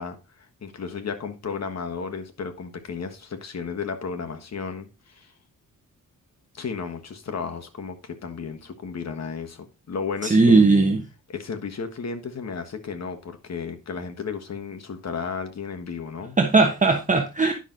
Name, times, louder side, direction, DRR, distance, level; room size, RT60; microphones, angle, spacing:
voice 1, 0.0-5.3 6.5-10.7 11.3-16.4, left 5 dB, 50° left, 1.4 m, -33 dB
voice 2, 10.2-11.0 16.4-17.5, right 3 dB, 25° right, 1.1 m, -18 dB
10.0 x 5.9 x 3.9 m
wide cardioid pair, 115°, 33 cm